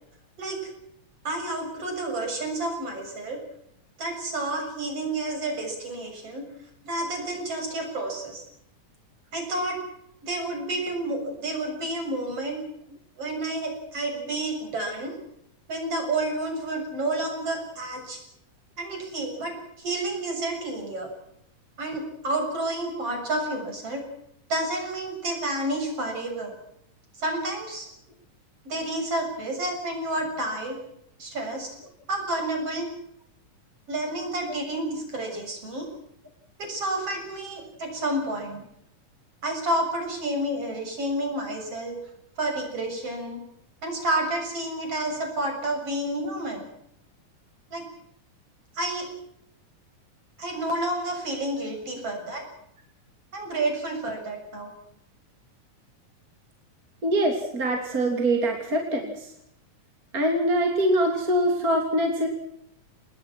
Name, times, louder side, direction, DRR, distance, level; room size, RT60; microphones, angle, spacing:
voice 1, 1.2-3.4 4.0-6.5 6.9-8.4 9.3-9.8 10.2-12.6 13.2-15.2 15.7-18.2 18.8-21.1 21.8-24.0 24.5-26.5 27.2-27.9 28.6-30.8 31.2-31.7 32.1-32.9 33.9-35.9 36.6-38.7 39.4-42.0 42.4-43.4 43.8-46.7 47.7-47.8 48.7-49.1 50.4-52.4 53.3-54.7, right 1 dB, 45° right, 3 dB, 7.9 m, -30 dB
voice 2, 57.0-59.3 60.1-62.3, right 1 dB, 25° right, 2 dB, 3.3 m, -24 dB
28.5 x 20.5 x 6.2 m, 0.77 s
omnidirectional pair, 3.7 m